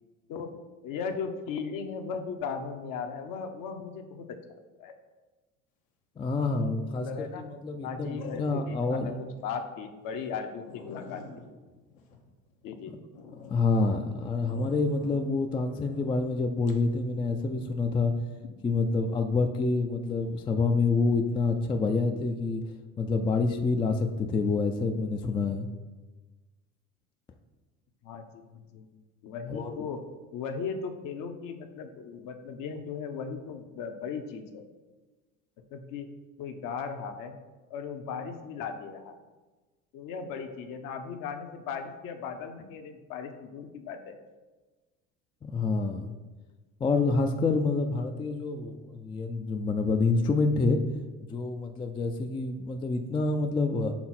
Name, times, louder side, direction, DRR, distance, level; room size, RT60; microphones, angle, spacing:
voice 1, 0.8-4.9 6.9-7.5 7.8-11.2 12.6-13.0 28.0-28.9 29.2-30.0 30.3-34.6 35.7-36.1 36.4-37.3 37.7-39.1 39.9-44.2, left 6 dB, 55° left, 6 dB, 0.8 m, -37 dB
voice 2, 6.2-9.2 13.5-18.1 18.6-22.6 23.0-25.7 29.5-29.8 45.4-46.1 46.8-50.8 51.3-53.9, left 3 dB, 15° left, 5 dB, 0.3 m, -27 dB
sound 1, 6.6-7.0 8.2-8.9 9.4-9.5 10.0-10.1 10.3-10.4 10.7-12.7 13.1-13.6 14.5-15.3 15.7-16.1 16.7-16.9, left 5 dB, 75° left, 1.0 m, -46 dB
5.9 x 3.8 x 4.2 m, 1.2 s
hypercardioid pair, 70°, 40 cm